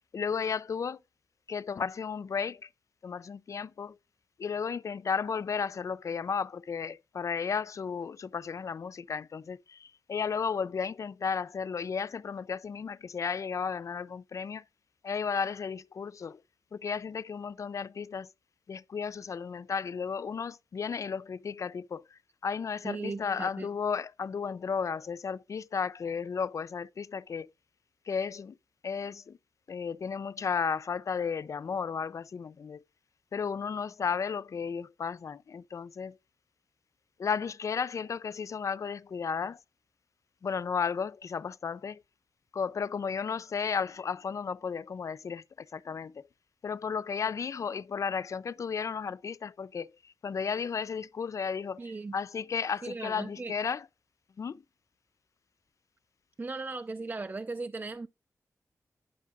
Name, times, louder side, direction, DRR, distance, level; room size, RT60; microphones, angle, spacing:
voice 1, 0.1-1.0 1.5-2.7 3.0-4.0 4.4-14.6 15.0-16.4 16.7-18.3 18.7-27.5 28.1-28.6 28.8-29.4 29.7-32.8 33.3-36.2 37.2-39.6 40.4-42.0 42.5-46.3 46.6-53.9 54.4-54.6, left 6 dB, 60° left, 0.4 m, -34 dB
voice 2, 22.8-23.7 51.8-52.1 52.8-53.5 56.4-58.1, right 3 dB, 30° right, 0.5 m, -37 dB
11.0 x 5.7 x 3.7 m
wide cardioid pair, 100°, 6 cm